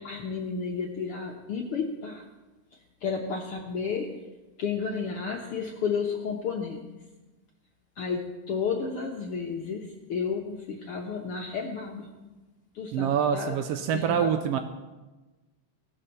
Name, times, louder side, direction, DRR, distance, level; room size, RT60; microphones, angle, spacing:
voice 1, 0.0-2.3 3.0-4.1 4.6-6.8 8.0-12.1 12.7-13.6 13.9-14.3, left 5 dB, 65° left, 0 dB, 1.5 m, -32 dB
voice 2, 12.9-14.6, right 8 dB, 80° right, 7 dB, 1.4 m, -26 dB
17.0 x 5.7 x 6.6 m, 1.2 s
omnidirectional pair, 3.4 m